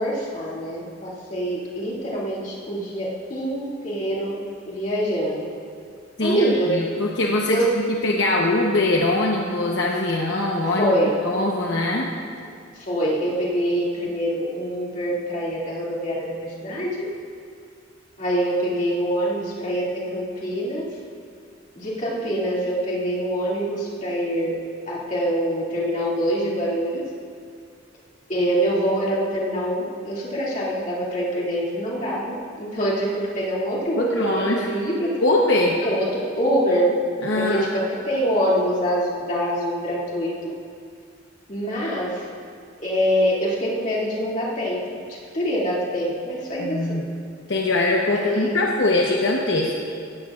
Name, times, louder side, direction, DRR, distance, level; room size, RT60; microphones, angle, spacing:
voice 1, 0.0-4.4 4.7-5.5 6.2-6.8 7.5-7.7 10.8-11.2 12.9-17.1 18.2-20.8 21.7-24.5 24.9-27.0 28.3-35.2 35.8-36.9 37.3-40.3 41.5-42.2 42.8-45.0 45.3-47.0 48.1-48.6, equal, 40° left, -6 dB, 2.5 m, -25 dB
voice 2, 6.2-7.6 8.0-10.9 11.2-12.1 34.0-34.7 35.2-35.8 37.2-37.7 46.6-47.0 47.5-49.8, left 2 dB, 70° left, -2 dB, 0.9 m, -22 dB
17.0 x 13.0 x 2.5 m, 2.3 s
head